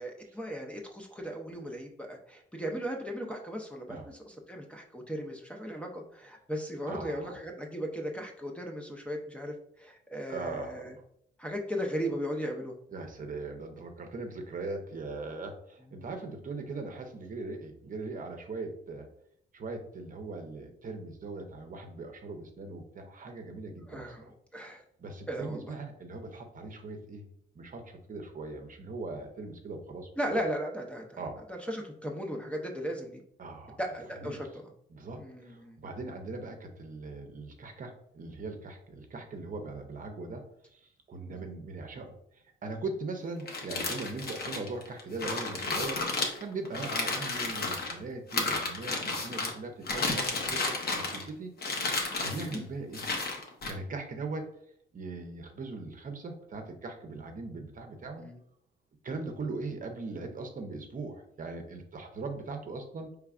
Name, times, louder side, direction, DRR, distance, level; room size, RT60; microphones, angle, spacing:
voice 1, 0.0-10.9 11.4-12.7 23.9-24.8 25.3-25.8 30.2-31.2 31.5-33.2 33.8-34.5 35.1-35.8 41.3-41.4 52.3-52.6 58.2-58.4, equal, 5° left, 1 dB, 0.6 m, -37 dB
voice 2, 6.9-7.3 10.3-10.9 12.9-19.1 19.5-24.3 25.0-27.2 27.5-30.4 31.2-31.4 33.4-33.8 34.2-34.4 34.9-40.4 40.7-42.1 42.6-46.0 46.4-51.5 52.2-53.1 53.7-54.5 54.9-58.2 59.0-63.1, right 3 dB, 40° right, 5 dB, 0.7 m, -40 dB
sound 1, 43.4-47.9 48.3-49.5 49.9-51.3 51.6-52.6 52.9-53.7, left 3 dB, 50° left, 0.9 m, -32 dB
4.6 x 3.3 x 2.4 m, 0.70 s
cardioid pair, 90°, 20 cm